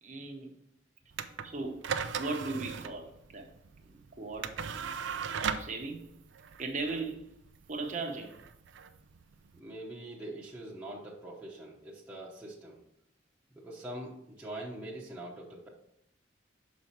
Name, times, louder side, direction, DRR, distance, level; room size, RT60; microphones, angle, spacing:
voice 1, 0.0-0.5 1.4-3.5 3.9-4.5 5.4-6.1 6.6-7.3 7.7-8.3, right 3 dB, 40° right, 2 dB, 1.0 m, -37 dB
sound 1, 1.1-9.6, right 6 dB, 70° right, 0.4 m, -38 dB
voice 2, 9.5-12.8 13.5-15.7, right 1 dB, 5° right, -7 dB, 1.0 m, -43 dB
6.1 x 4.2 x 4.6 m, 0.76 s
head